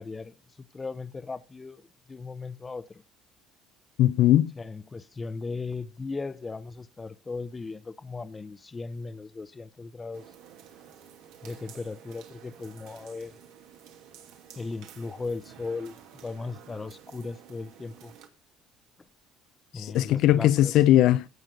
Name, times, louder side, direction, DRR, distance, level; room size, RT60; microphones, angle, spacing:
voice 1, 0.0-3.0 4.6-10.3 11.4-13.4 14.6-18.1 19.7-20.7, left 3 dB, 20° left, 0.8 m, -37 dB
voice 2, 4.0-4.5 19.7-21.3, left 13 dB, 70° left, 0.7 m, -20 dB
sound 1, 10.1-18.3, right 9 dB, 80° right, 2.6 m, -51 dB
16.0 x 6.3 x 5.3 m
cardioid pair, 115°, 0 cm